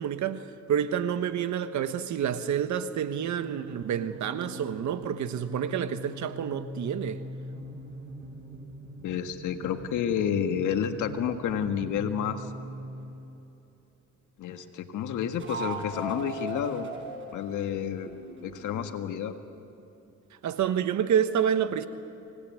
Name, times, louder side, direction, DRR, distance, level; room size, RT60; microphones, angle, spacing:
voice 1, 0.0-7.2 20.4-21.9, right 8 dB, 70° right, 1.3 m, -28 dB
sound 1, 2.9-13.1 15.3-19.0, right 1 dB, 40° right, 5.1 m, -41 dB
voice 2, 9.0-12.5 14.4-16.9 17.3-18.1 18.4-19.4, left 8 dB, 80° left, 1.7 m, -30 dB
25.0 x 19.0 x 9.5 m
cardioid pair, 90°, 30 cm